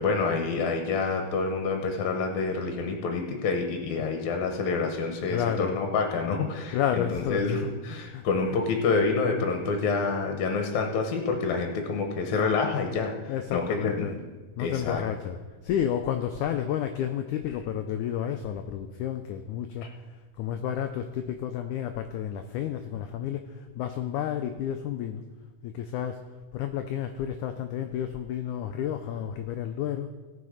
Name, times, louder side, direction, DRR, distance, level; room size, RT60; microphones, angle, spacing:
voice 1, 0.0-13.1 13.5-14.1 14.6-15.1, left 4 dB, 65° left, 3 dB, 2.0 m, -27 dB
voice 2, 5.3-5.8 6.3-6.4 6.7-7.5 8.1-8.6 9.0-9.1 13.3-14.2 14.6-19.9 20.4-25.2 25.6-26.2 26.5-30.1, left 9 dB, 90° left, 7 dB, 1.7 m, -31 dB
18.0 x 5.9 x 4.9 m, 1.3 s
omnidirectional pair, 4.1 m